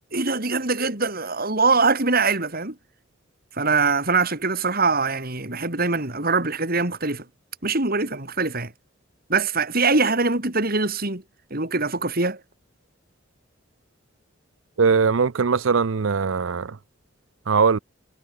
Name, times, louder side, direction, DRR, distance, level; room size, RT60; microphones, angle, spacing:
voice 1, 0.1-2.7 3.6-7.2 7.6-8.7 9.3-11.2 11.5-12.4, right 4 dB, 50° right, 4.6 m, -23 dB
voice 2, 14.8-16.8 17.5-17.8, right 5 dB, 85° right, 0.6 m, -20 dB
head